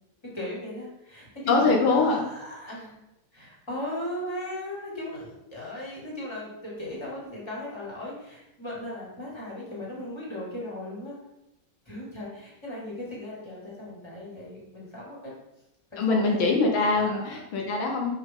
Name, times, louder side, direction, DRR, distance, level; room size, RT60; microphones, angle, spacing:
voice 1, 0.3-3.0 3.3-11.1 11.9-15.3 15.9-16.5 16.9-17.4, left 1 dB, 15° left, -5 dB, 2.4 m, -37 dB
voice 2, 1.5-2.2 16.0-18.1, left 3 dB, 75° left, 1 dB, 1.7 m, -23 dB
6.4 x 5.5 x 3.7 m, 0.89 s
omnidirectional pair, 2.3 m